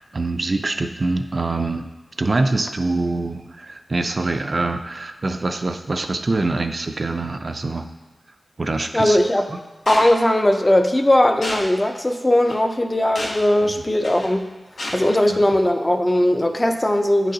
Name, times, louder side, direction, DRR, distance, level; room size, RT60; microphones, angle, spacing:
voice 1, 0.0-1.9 2.2-7.9 8.6-9.2 13.6-13.7 15.3-15.4, right 2 dB, 45° right, 6 dB, 0.3 m, -24 dB
voice 2, 8.9-9.5 9.9-14.5 14.9-17.3, left 1 dB, 20° left, 5 dB, 0.4 m, -18 dB
sound 1, 9.9-10.1 11.4-11.7 12.5-12.6 13.2-13.5 14.0-14.3 14.8-15.0, left 1 dB, 75° left, 0.9 m, -29 dB
9.0 x 3.9 x 2.7 m, 1.2 s
wide cardioid pair, 105°, 0 cm